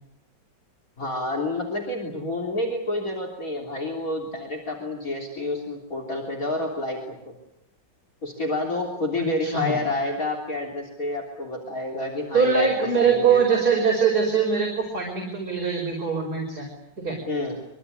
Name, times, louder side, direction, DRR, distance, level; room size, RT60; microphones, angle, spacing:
voice 1, 1.0-7.3 8.2-13.4 17.3-17.6, left 2 dB, 45° left, 2 dB, 4.0 m, -29 dB
voice 2, 9.2-9.8 12.3-16.7 17.0-17.2, right 6 dB, 55° right, 0 dB, 5.7 m, -22 dB
25.0 x 24.5 x 9.7 m, 0.81 s
omnidirectional pair, 2.0 m